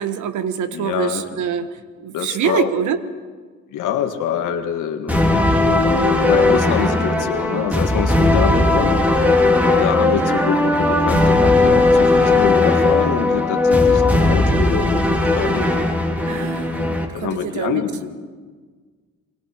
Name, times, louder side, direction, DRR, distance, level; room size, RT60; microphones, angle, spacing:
voice 1, 0.0-1.7 2.0-3.0 16.3-17.8, right 8 dB, 75° right, 11 dB, 1.4 m, -25 dB
voice 2, 0.7-1.2 2.1-2.7 3.7-6.0 6.3-9.0 9.8-15.7 17.1-18.1, left 9 dB, 85° left, 6 dB, 1.9 m, -25 dB
sound 1, 5.1-17.1, left 2 dB, 5° right, 3.1 m, -17 dB
29.0 x 23.0 x 4.5 m, 1.5 s
cardioid pair, 90°, 30 cm